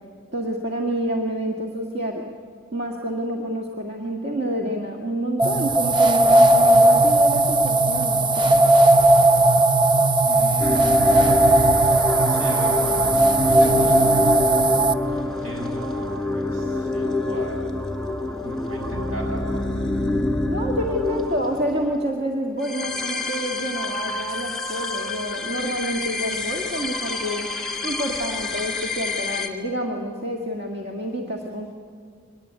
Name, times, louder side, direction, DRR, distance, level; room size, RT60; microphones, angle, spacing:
voice 1, 0.3-2.2 2.7-8.6 20.5-27.5 27.8-31.7, equal, 55° right, 1 dB, 1.8 m, -28 dB
sound 1, 5.4-14.9, right 2 dB, 25° right, 0.7 m, -17 dB
voice 2, 10.2-11.9 12.3-14.4 15.1-17.8 18.4-19.7, equal, 80° right, 1 dB, 6.7 m, -35 dB
sound 2, 10.6-29.5, left 2 dB, ahead, 1.9 m, -27 dB
23.5 x 19.0 x 9.9 m, 2.1 s
head